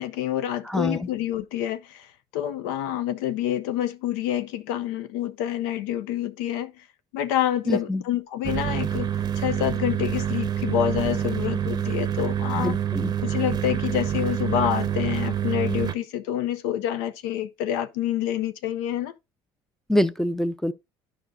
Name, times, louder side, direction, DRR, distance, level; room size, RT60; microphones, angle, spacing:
voice 1, 0.0-6.8 7.1-9.1 9.4-12.8 13.2-19.1, left 11 dB, 85° left, 0.6 m, -27 dB
voice 2, 0.7-1.0 7.7-8.0 12.5-13.1 19.9-20.7, left 1 dB, 5° left, 0.5 m, -25 dB
sound 1, 8.4-15.9, right 10 dB, 35° right, 0.6 m, -27 dB
11.0 x 5.1 x 2.6 m
supercardioid pair, 85°, 12 cm